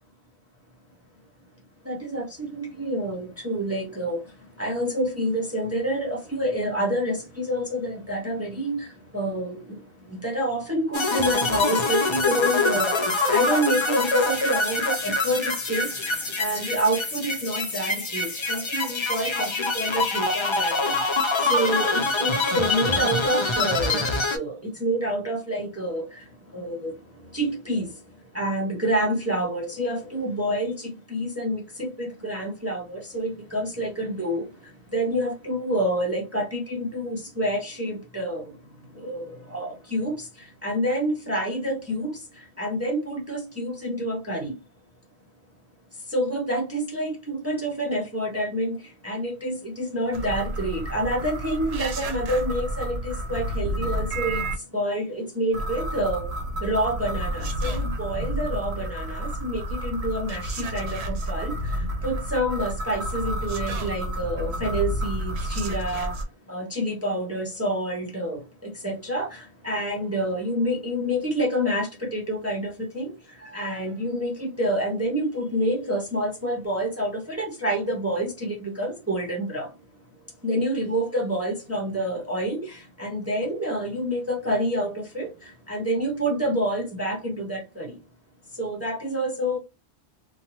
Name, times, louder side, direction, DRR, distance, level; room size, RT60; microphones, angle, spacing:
voice 1, 1.8-44.6 45.9-56.3 56.6-66.2 66.5-79.7 80.4-88.0 88.5-89.6, right 1 dB, 15° right, 0.6 m, -28 dB
sound 1, 10.9-24.4, left 3 dB, 35° left, 0.5 m, -25 dB
sound 2, 50.1-54.6 55.5-66.2, right 1 dB, 80° right, 0.9 m, -30 dB
2.8 x 2.2 x 2.9 m
omnidirectional pair, 1.1 m